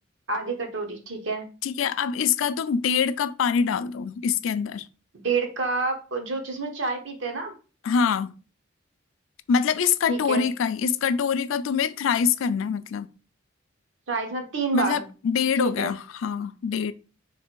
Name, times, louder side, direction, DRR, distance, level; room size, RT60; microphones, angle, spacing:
voice 1, 0.3-1.4 5.2-7.5 10.1-10.5 14.1-15.0 15.6-15.9, right 4 dB, 70° right, 1.0 m, -28 dB
voice 2, 1.6-4.9 7.8-8.3 9.5-13.1 14.7-16.9, left 6 dB, 80° left, 0.4 m, -24 dB
3.3 x 3.3 x 4.4 m
head